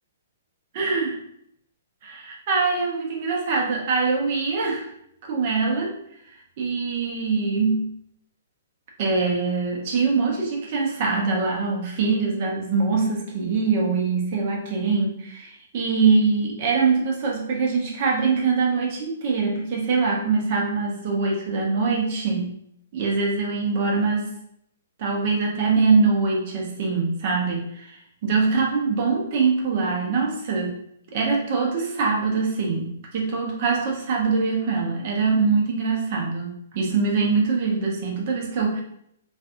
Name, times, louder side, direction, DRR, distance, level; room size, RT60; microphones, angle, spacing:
voice 1, 0.7-1.1 2.0-4.9 5.2-5.9 6.6-7.9 9.0-22.5 22.9-24.3 25.0-30.7 31.1-38.8, right 4 dB, 45° right, -1 dB, 0.7 m, -23 dB
2.5 x 2.3 x 2.4 m, 0.72 s
figure-of-eight pair, 125°, 0 cm